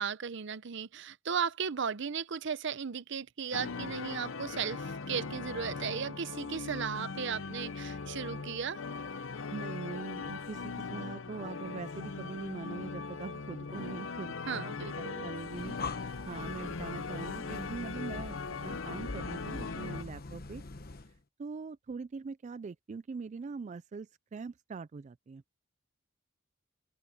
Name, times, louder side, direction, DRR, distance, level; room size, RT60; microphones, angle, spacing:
voice 1, 0.0-8.8 14.5-15.3, right 6 dB, 65° right, 0.6 m, -36 dB
sound 1, 3.5-20.0, left 4 dB, 75° left, 0.8 m, -40 dB
voice 2, 9.5-20.6 21.4-25.4, right 4 dB, 35° right, 0.3 m, -43 dB
Breathing, 15.4-21.2, left 3 dB, 50° left, 1.1 m, -44 dB
open air
head